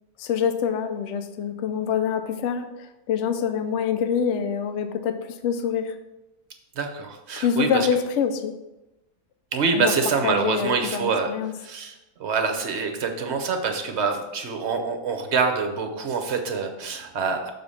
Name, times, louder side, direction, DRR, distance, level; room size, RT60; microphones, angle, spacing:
voice 1, 0.2-6.0 7.4-8.5 9.7-9.9 10.2-11.5, left 7 dB, 60° left, 8 dB, 0.9 m, -25 dB
voice 2, 6.8-7.9 9.5-11.3 11.6-11.9 12.2-17.5, right 5 dB, 55° right, 5 dB, 1.1 m, -25 dB
6.7 x 3.8 x 5.5 m, 0.95 s
omnidirectional pair, 1.5 m